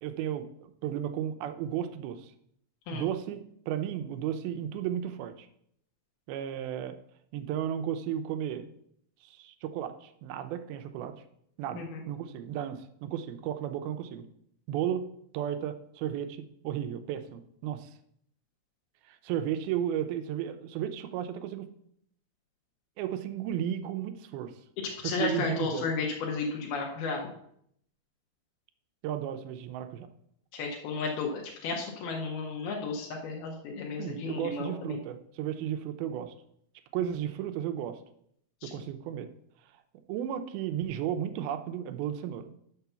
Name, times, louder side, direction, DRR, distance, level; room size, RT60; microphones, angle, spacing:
voice 1, 0.0-2.3 2.9-5.5 6.3-7.0 7.3-8.7 9.2-11.1 11.6-14.3 14.7-15.1 15.3-17.9 19.1-21.7 23.0-24.5 25.0-25.9 29.0-30.1 34.0-36.3 36.9-38.0 38.6-39.3 40.1-42.5, right 10 dB, 80° right, 9 dB, 2.5 m, -34 dB
voice 2, 25.0-27.2 30.5-35.0 38.6-38.8, left 4 dB, 80° left, -1 dB, 3.0 m, -33 dB
6.7 x 5.8 x 6.9 m, 0.70 s
omnidirectional pair, 4.4 m